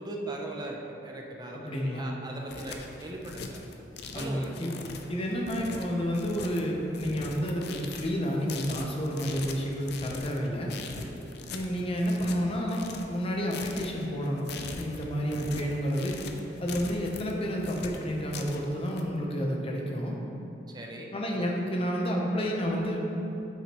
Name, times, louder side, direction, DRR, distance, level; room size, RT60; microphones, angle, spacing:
voice 1, 0.0-3.6 4.1-4.5 5.3-5.4 11.0-11.1 20.7-21.1, right 2 dB, 25° right, 0 dB, 0.6 m, -39 dB
voice 2, 1.5-2.1 4.1-4.7 5.1-10.7 11.5-14.5 14.7-16.2 16.6-20.2 21.1-23.0, equal, 30° left, -1 dB, 0.8 m, -30 dB
sound 1, 2.2-19.0, left 4 dB, 60° left, 0.5 m, -41 dB
8.0 x 4.9 x 3.0 m, 2.9 s
head